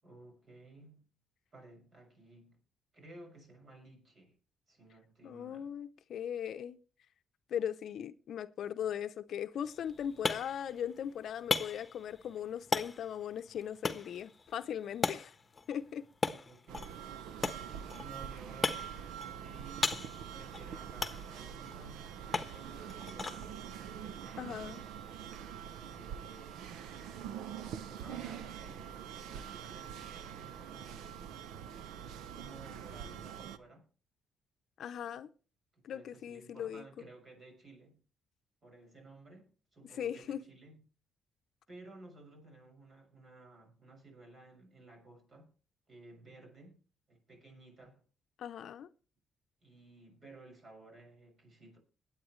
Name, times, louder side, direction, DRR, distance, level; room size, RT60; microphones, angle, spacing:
voice 1, 0.0-1.1 1.5-2.6 2.9-4.4 4.7-5.7 16.2-17.4 17.9-18.9 19.2-23.5 24.0-24.9 25.8-26.8 27.7-31.1 32.1-33.9 35.7-38.0 38.6-40.9 41.7-45.5 45.9-46.8 47.1-48.0 49.6-51.8, right 2 dB, 45° right, 6.5 m, -55 dB
voice 2, 5.2-6.8 7.5-15.3 15.7-16.1 24.4-24.8 34.8-35.3 35.8-36.9 39.9-40.4 48.4-48.9, left 9 dB, 70° left, 0.7 m, -39 dB
sound 1, 9.6-25.3, left 4 dB, 25° left, 1.2 m, -39 dB
sound 2, 16.7-33.6, right 9 dB, 85° right, 0.7 m, -45 dB
21.0 x 9.0 x 3.2 m
cardioid pair, 90°, 0 cm